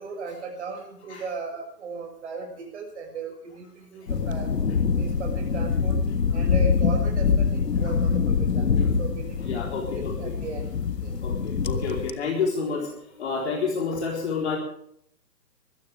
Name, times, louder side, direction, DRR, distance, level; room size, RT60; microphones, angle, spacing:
voice 1, 0.0-4.5 4.9-6.0 6.3-10.7 11.0-11.2 11.7-12.0, right 4 dB, 45° right, 2 dB, 6.8 m, -37 dB
sound 1, 4.1-12.1, left 5 dB, 70° left, 1.6 m, -24 dB
voice 2, 9.4-10.3 11.2-14.6, left 4 dB, 40° left, 0 dB, 4.1 m, -29 dB
23.5 x 14.5 x 3.6 m, 0.67 s
hypercardioid pair, 160°, 50 cm